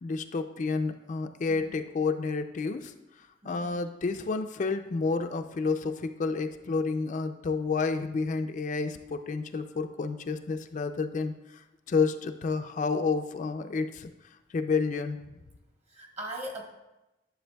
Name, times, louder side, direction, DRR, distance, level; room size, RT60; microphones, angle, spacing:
voice 1, 0.0-2.9 3.4-14.1 14.5-15.2, left 4 dB, 45° left, 7 dB, 0.3 m, -30 dB
voice 2, 3.4-3.8 15.9-16.6, right 1 dB, 35° right, 0 dB, 1.4 m, -40 dB
11.5 x 6.9 x 2.2 m, 0.97 s
head